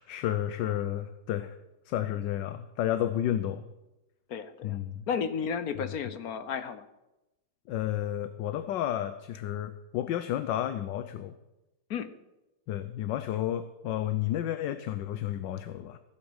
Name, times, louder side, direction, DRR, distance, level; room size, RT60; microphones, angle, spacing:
voice 1, 0.0-1.5 1.8-3.6 4.6-5.0 5.8-5.9 7.7-11.3 12.7-16.0, left 12 dB, 75° left, 11 dB, 1.4 m, -31 dB
voice 2, 4.3-4.8 5.1-6.9 11.9-12.1, left 7 dB, 60° left, 12 dB, 1.1 m, -33 dB
15.5 x 8.4 x 7.9 m, 0.98 s
omnidirectional pair, 2.0 m